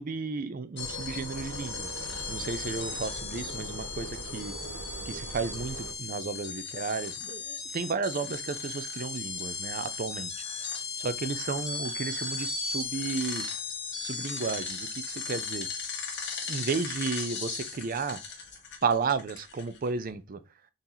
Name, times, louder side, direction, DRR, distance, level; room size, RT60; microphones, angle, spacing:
voice 1, 0.0-1.9 2.3-4.5 5.1-10.3 11.0-13.4 14.0-15.7 16.5-18.2 18.8-20.4, right 4 dB, 45° right, 0.5 m, -33 dB
sound 1, 0.8-19.9, left 5 dB, 60° left, 1.4 m, -37 dB
sound 2, 0.8-5.9, right 2 dB, 80° right, 0.8 m, -41 dB
4.0 x 3.9 x 2.8 m
head